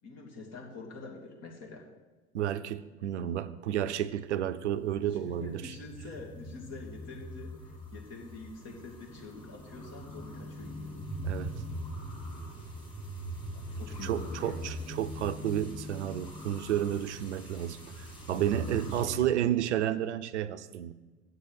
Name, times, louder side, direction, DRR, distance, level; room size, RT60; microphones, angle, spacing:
voice 1, 0.0-1.9 5.0-10.9 13.5-14.7 18.6-19.5, left 3 dB, 45° left, 0 dB, 2.7 m, -46 dB
voice 2, 2.3-5.6 11.2-11.5 14.0-20.9, right 11 dB, 80° right, 12 dB, 0.6 m, -31 dB
sound 1, 4.1-19.0, equal, 15° left, 4.2 m, -42 dB
7.9 x 6.9 x 8.0 m, 1.2 s
hypercardioid pair, 75°, 35 cm